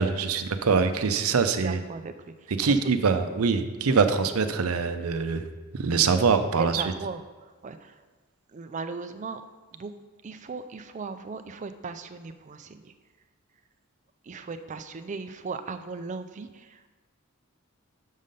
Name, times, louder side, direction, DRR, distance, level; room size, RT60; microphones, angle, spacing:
voice 1, 0.0-1.8 2.6-5.4 5.7-6.8, right 5 dB, 80° right, 9 dB, 0.6 m, -24 dB
voice 2, 1.4-2.8 6.5-8.0 8.5-9.4 9.7-9.9 10.2-12.9 14.2-16.9, right 4 dB, 35° right, 10 dB, 0.4 m, -38 dB
6.3 x 5.6 x 5.2 m, 1.3 s
head